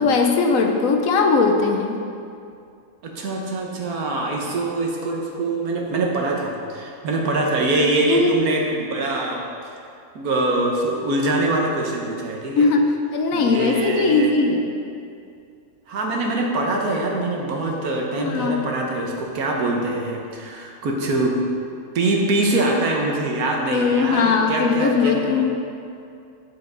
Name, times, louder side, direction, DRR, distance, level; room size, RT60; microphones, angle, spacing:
voice 1, 0.0-2.0 8.1-8.4 12.6-14.7 18.2-18.6 23.7-25.5, left 4 dB, 65° left, 3 dB, 1.1 m, -19 dB
voice 2, 3.0-9.7 10.1-12.7 13.3-14.3 15.9-21.4 21.9-25.5, right 2 dB, 75° right, 0 dB, 1.5 m, -24 dB
8.4 x 7.3 x 3.9 m, 2.4 s
omnidirectional pair, 1.6 m